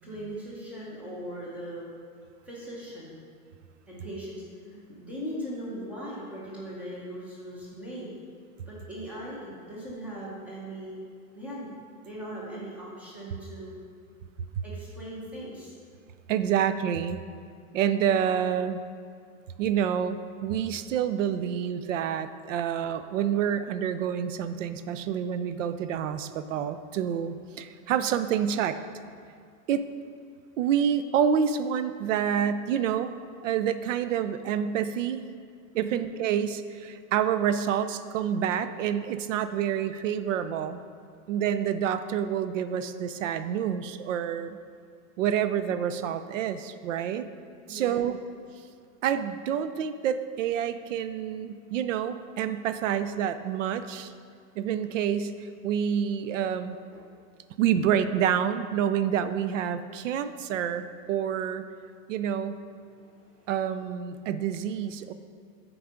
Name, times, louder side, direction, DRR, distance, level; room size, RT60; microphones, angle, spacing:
voice 1, 0.0-1.9 2.5-3.1 3.9-8.1 8.7-11.0 11.3-11.7 12.0-13.8 14.6-15.8 35.7-36.0 47.7-48.0 56.9-57.0 63.0-63.5, equal, 5° right, -6 dB, 0.6 m, -39 dB
voice 2, 16.3-17.2 17.7-18.8 19.6-28.8 29.7-29.9 30.6-33.1 33.4-35.2 35.7-40.8 41.3-44.6 45.2-47.3 47.7-48.2 49.0-54.1 54.6-56.8 57.6-61.7 62.1-62.6 63.5-65.1, right 8 dB, 60° right, 12 dB, 0.5 m, -28 dB
8.9 x 4.7 x 5.0 m, 2.2 s
supercardioid pair, 175°, 44 cm